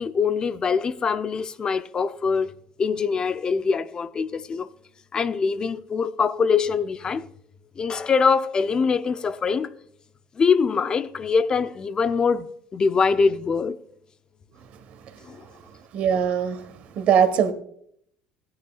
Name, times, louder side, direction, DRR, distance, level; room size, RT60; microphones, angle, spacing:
voice 1, 0.0-2.5 2.8-4.7 5.1-7.2 7.8-9.7 10.4-12.5 12.7-13.8 15.3-15.4, left 5 dB, 35° left, 0.7 m, -23 dB
voice 2, 15.9-17.5, right 8 dB, 60° right, 1.4 m, -21 dB
16.5 x 9.4 x 2.4 m
supercardioid pair, 100°, 3 cm